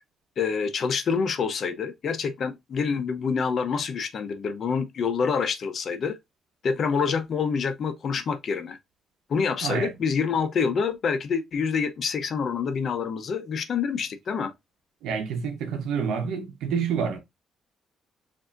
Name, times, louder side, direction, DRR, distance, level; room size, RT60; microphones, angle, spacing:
voice 1, 0.4-6.2 6.6-8.8 9.3-14.5, left 6 dB, 55° left, 0.8 m, -27 dB
voice 2, 9.6-9.9 15.0-17.2, right 6 dB, 85° right, 0.9 m, -28 dB
7.0 x 2.7 x 2.5 m
cardioid pair, 90°, 0 cm